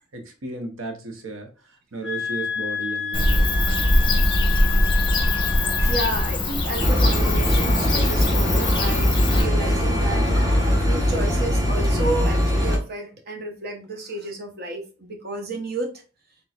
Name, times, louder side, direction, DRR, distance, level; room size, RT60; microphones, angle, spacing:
voice 1, 0.1-1.5 1.9-4.3, right 2 dB, 80° right, 4 dB, 1.0 m, -35 dB
sound 1, 2.0-6.3, left 6 dB, 5° left, 0.9 m, -29 dB
Bird / Cricket, 3.1-9.4, left 1 dB, 25° left, 0.9 m, -22 dB
voice 2, 5.8-10.2 10.8-16.0, right 2 dB, 50° right, 4 dB, 1.0 m, -31 dB
sound 2, 6.8-12.8, equal, 15° right, 1.1 m, -21 dB
4.2 x 3.6 x 2.5 m, 0.33 s
head